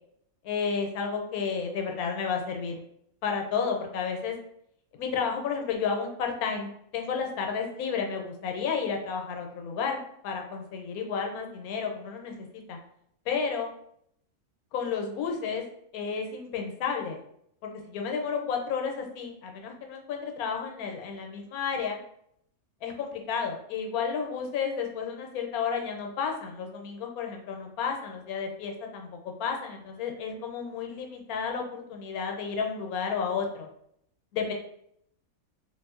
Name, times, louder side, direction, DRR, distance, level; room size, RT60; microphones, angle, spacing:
voice 1, 0.4-2.8 3.2-4.3 4.9-12.8 13.3-13.7 14.7-15.6 15.9-17.2 17.6-22.0 22.8-33.7 34.3-34.5, left 6 dB, 80° left, 3 dB, 1.1 m, -32 dB
3.3 x 2.5 x 2.3 m, 0.72 s
omnidirectional pair, 1.5 m